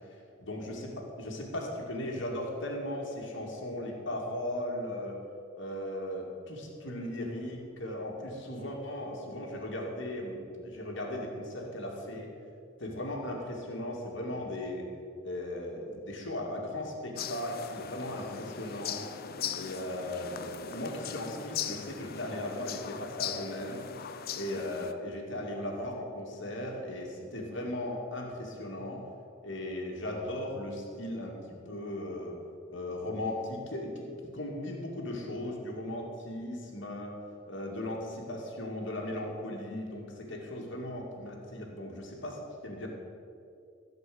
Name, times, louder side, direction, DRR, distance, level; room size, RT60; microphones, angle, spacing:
voice 1, 0.4-5.2 5.5-12.3 12.8-14.9 15.2-19.1 19.6-23.8 24.3-29.1 29.4-31.4 31.7-32.4 32.7-37.2 37.5-42.9, left 1 dB, 65° left, -1 dB, 2.2 m, -37 dB
sound 1, 17.2-24.9, left 8 dB, 50° left, 0.6 m, -39 dB
15.5 x 5.3 x 7.7 m, 2.5 s
head